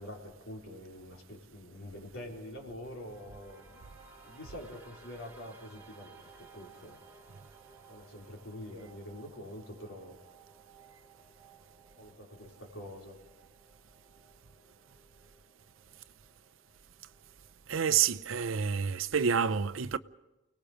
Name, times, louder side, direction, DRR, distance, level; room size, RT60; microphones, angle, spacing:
voice 1, 0.0-3.8 4.2-7.0 7.9-10.2 11.9-13.2, left 1 dB, 85° left, 4.4 m, -46 dB
sound 1, 2.3-18.3, right 4 dB, 10° right, 2.6 m, -59 dB
voice 2, 17.7-20.0, right 7 dB, 75° right, 0.6 m, -28 dB
29.5 x 19.0 x 5.2 m
head